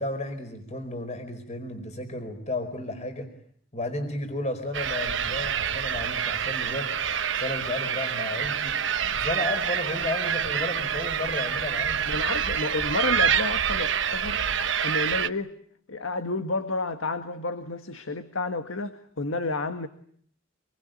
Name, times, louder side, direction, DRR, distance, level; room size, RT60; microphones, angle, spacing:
voice 1, 0.0-3.3 3.7-6.9 7.3-8.8 9.2-12.1, left 1 dB, 35° left, 8 dB, 4.7 m, -33 dB
sound 1, 4.7-15.3, right 8 dB, 65° right, 1.1 m, -27 dB
voice 2, 12.1-14.4 14.8-15.5 15.9-19.9, left 2 dB, 75° left, 8 dB, 1.7 m, -30 dB
27.0 x 23.5 x 9.2 m, 0.62 s
head